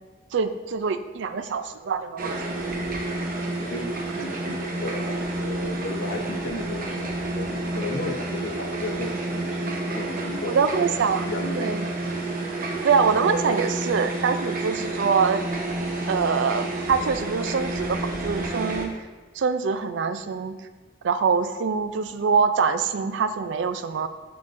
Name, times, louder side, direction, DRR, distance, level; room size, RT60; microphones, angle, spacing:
voice 1, 0.3-2.4 10.5-11.3 11.6-11.9 12.8-15.5 16.1-18.9 19.3-20.6 21.0-24.1, right 5 dB, 70° right, 11 dB, 0.4 m, -24 dB
sound 1, 2.2-18.9, right 2 dB, 50° right, 0.8 m, -30 dB
voice 2, 4.2-10.9 11.2-11.8, left 2 dB, 85° left, 3 dB, 0.8 m, -34 dB
11.5 x 3.8 x 2.5 m, 1.3 s
head